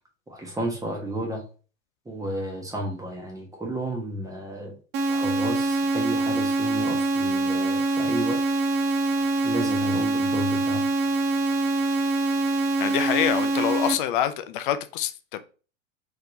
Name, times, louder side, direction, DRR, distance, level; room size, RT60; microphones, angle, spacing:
voice 1, 0.3-1.4 2.0-4.8 5.1-8.4 9.4-10.8, right 1 dB, 10° right, 0 dB, 1.3 m, -32 dB
sound 1, 4.9-13.9, right 2 dB, 25° right, 0.6 m, -24 dB
voice 2, 12.8-15.4, left 11 dB, 40° left, 11 dB, 0.5 m, -26 dB
4.3 x 3.4 x 2.6 m, 0.35 s
figure-of-eight pair, 90°, 40 cm